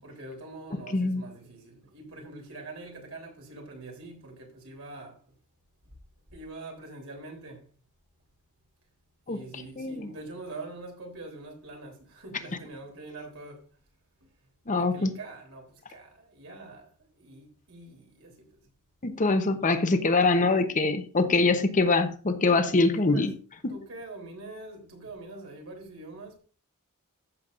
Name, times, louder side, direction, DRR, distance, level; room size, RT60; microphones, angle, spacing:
voice 1, 0.0-5.2 6.3-7.7 9.3-13.8 14.7-18.6 21.3-21.7 22.7-23.3 23.7-26.4, right 2 dB, 65° right, 3.4 m, -44 dB
voice 2, 0.9-1.2 9.3-9.4 9.8-10.1 14.7-15.1 19.0-23.3, left 3 dB, 35° left, 0.9 m, -24 dB
14.5 x 7.2 x 2.5 m
head